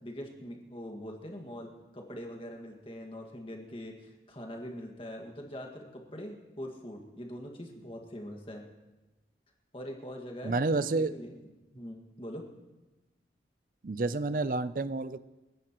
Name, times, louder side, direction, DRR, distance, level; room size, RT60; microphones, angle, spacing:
voice 1, 0.0-8.6 9.7-11.3 11.7-12.5, equal, 30° left, 2 dB, 1.9 m, -43 dB
voice 2, 10.4-11.1 13.8-15.2, right 3 dB, 50° right, 14 dB, 0.5 m, -29 dB
30.0 x 11.0 x 3.1 m, 1.1 s
head